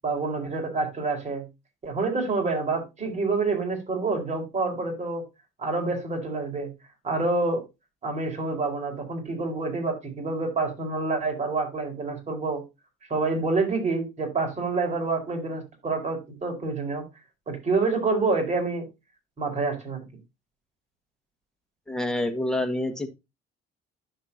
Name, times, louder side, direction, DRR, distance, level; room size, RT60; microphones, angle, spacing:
voice 1, 0.0-1.4 1.8-5.2 5.6-6.7 7.0-7.6 8.0-12.6 13.1-17.0 17.5-18.9 19.4-20.0, right 3 dB, 35° right, 3 dB, 4.6 m, -27 dB
voice 2, 21.9-23.1, left 1 dB, 5° left, 6 dB, 1.6 m, -27 dB
10.5 x 6.7 x 2.8 m, 0.23 s
cardioid pair, 100°, 20 cm